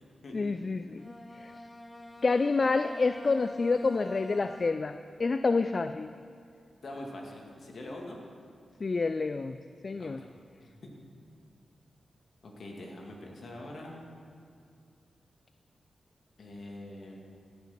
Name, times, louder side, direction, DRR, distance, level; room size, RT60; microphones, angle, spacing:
voice 1, 0.3-1.1 1.4-1.5 2.2-6.1 8.8-9.6 9.8-10.2, left 3 dB, 50° left, 10 dB, 0.3 m, -28 dB
Bowed string instrument, 0.9-5.2, left 1 dB, 15° left, 0.9 m, -47 dB
voice 2, 6.8-8.2 9.9-10.3 10.6-10.9 12.4-14.1 16.4-17.2, left 1 dB, 65° left, 0 dB, 2.2 m, -44 dB
17.0 x 6.1 x 5.9 m, 2.4 s
cardioid pair, 60°, 0 cm